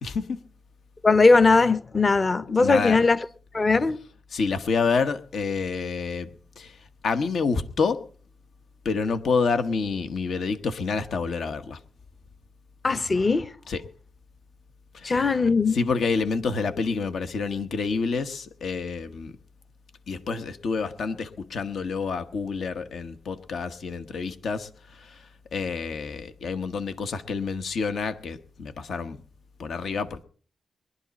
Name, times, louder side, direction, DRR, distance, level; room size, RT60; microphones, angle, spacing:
voice 1, 0.0-0.4 2.6-3.0 4.3-6.3 6.6-6.8 7.0-8.0 8.8-11.8 13.7-13.8 14.9-15.2 15.7-19.4 20.1-29.2 29.6-30.2, left 4 dB, 75° left, 1.1 m, -28 dB
voice 2, 1.0-3.2 3.5-4.0 12.8-13.5 15.0-15.8, left 3 dB, 35° left, 0.8 m, -19 dB
21.5 x 11.5 x 4.1 m
cardioid pair, 105°, 0 cm